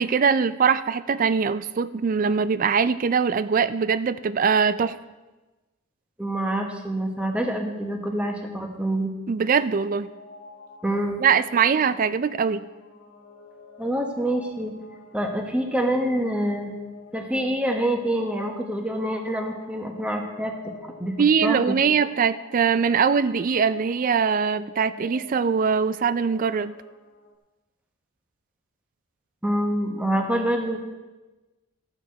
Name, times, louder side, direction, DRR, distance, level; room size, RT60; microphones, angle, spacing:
voice 1, 0.0-5.0 9.3-10.1 11.2-12.6 21.2-26.7, right 6 dB, 40° right, 15 dB, 0.3 m, -22 dB
voice 2, 6.2-9.1 10.8-11.2 13.8-14.7 15.1-16.7 17.1-20.5 20.8-21.1 21.4-21.8 29.4-30.8, right 1 dB, 5° right, 3 dB, 1.2 m, -26 dB
sound 1, 9.6-27.3, left 3 dB, 55° left, 1.6 m, -47 dB
13.0 x 8.9 x 4.6 m, 1.2 s
head